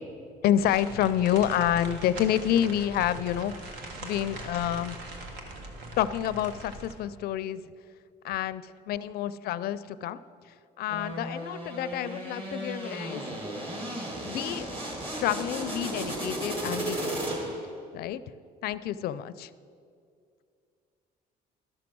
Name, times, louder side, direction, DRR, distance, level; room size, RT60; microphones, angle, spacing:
voice 1, 0.4-5.0 6.0-7.6 8.2-10.2 10.8-13.2 14.2-14.7 15.1-17.6 17.9-18.2 18.6-19.5, left 11 dB, 65° left, 15 dB, 0.4 m, -28 dB
sound 1, 0.6-6.9, right 2 dB, 80° right, 1.5 m, -41 dB
sound 2, 10.9-17.7, right 1 dB, 35° right, 2.3 m, -34 dB
12.5 x 6.1 x 6.1 m, 2.4 s
cardioid pair, 110°, 17 cm